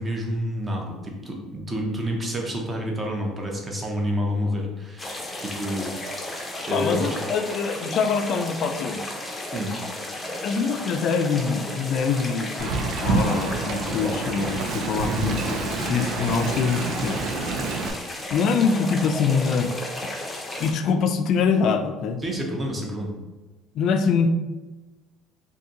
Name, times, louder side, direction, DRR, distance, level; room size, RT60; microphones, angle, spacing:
voice 1, 0.0-5.9 6.7-7.2 9.5-9.7 15.0-15.3 22.2-23.1, equal, 20° right, 0 dB, 0.7 m, -29 dB
sound 1, 5.0-20.7, left 1 dB, 15° left, 0.6 m, -34 dB
voice 2, 6.7-9.1 10.4-17.6 18.3-19.7 20.6-22.2 23.7-24.3, left 5 dB, 55° left, 8 dB, 0.3 m, -24 dB
Wind, 12.6-17.9, right 4 dB, 65° right, 0.4 m, -28 dB
2.7 x 2.6 x 3.7 m, 1.2 s
cardioid pair, 125°, 0 cm